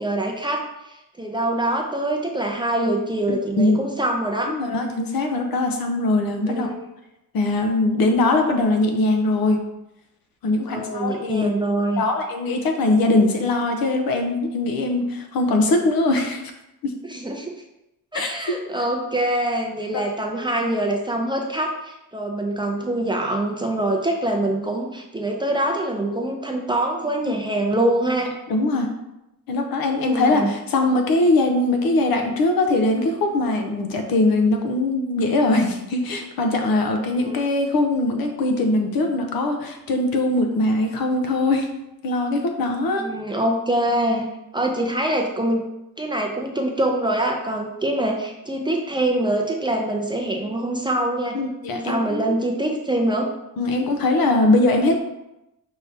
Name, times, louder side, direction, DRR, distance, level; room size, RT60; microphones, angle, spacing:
voice 1, 0.0-4.5 6.4-6.7 10.6-12.0 17.0-17.6 18.1-28.3 30.0-30.5 37.0-37.4 43.0-44.3 44.5-45.6 46.0-51.4 51.7-53.3, right 1 dB, 15° right, 0 dB, 0.4 m, -24 dB
voice 2, 4.5-6.7 7.3-9.6 10.4-11.5 12.0-16.4 16.8-16.9 18.1-18.3 19.9-20.0 28.5-28.9 29.5-41.7 42.0-43.1 51.3-52.4 53.6-55.0, left 2 dB, 75° left, 4 dB, 0.8 m, -21 dB
5.6 x 3.3 x 2.7 m, 0.91 s
cardioid pair, 140°, 36 cm